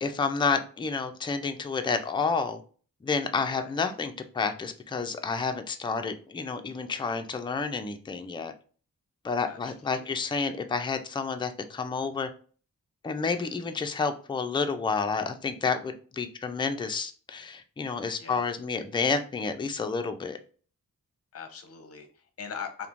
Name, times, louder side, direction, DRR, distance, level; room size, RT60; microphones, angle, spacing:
voice 1, 0.0-2.6 3.0-8.5 9.2-12.3 13.0-20.4, left 4 dB, 15° left, 0.3 m, -30 dB
voice 2, 9.5-10.1 13.2-13.5 18.2-18.5 21.3-22.9, left 6 dB, 45° left, 0.6 m, -42 dB
3.0 x 2.1 x 2.5 m
cardioid pair, 65°, 34 cm